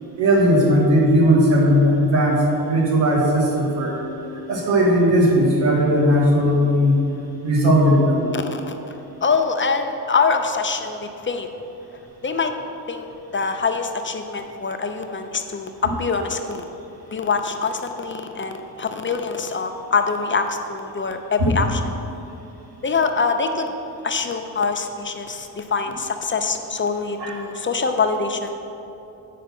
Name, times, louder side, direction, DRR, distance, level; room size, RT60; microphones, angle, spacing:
voice 1, 0.2-4.0 4.5-7.0 7.4-8.3 21.4-21.5 27.2-27.3, equal, 90° right, -3 dB, 2.0 m, -17 dB
voice 2, 8.3-8.8 9.2-11.5 12.2-12.5 12.9-13.0 13.3-16.6 17.1-21.8 22.8-23.7 24.0-28.6, left 4 dB, 30° left, 5 dB, 0.6 m, -24 dB
8.3 x 5.4 x 5.9 m, 3.0 s
cardioid pair, 95°, 42 cm